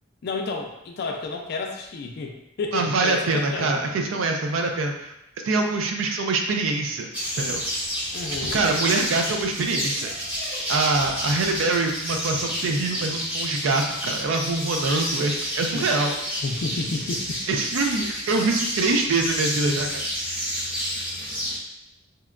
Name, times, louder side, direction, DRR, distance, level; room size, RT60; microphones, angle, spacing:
voice 1, 0.2-3.8 8.1-8.6 15.7-15.8 16.4-17.2, left 3 dB, 50° left, 3 dB, 0.3 m, -31 dB
voice 2, 2.7-5.1 5.4-7.1 7.4-7.6 8.5-10.1 10.7-16.1 17.5-20.0, right 3 dB, 70° right, 3 dB, 0.4 m, -24 dB
sound 1, 7.1-21.6, equal, 10° right, 0.5 m, -30 dB
2.8 x 2.1 x 2.4 m, 0.86 s
head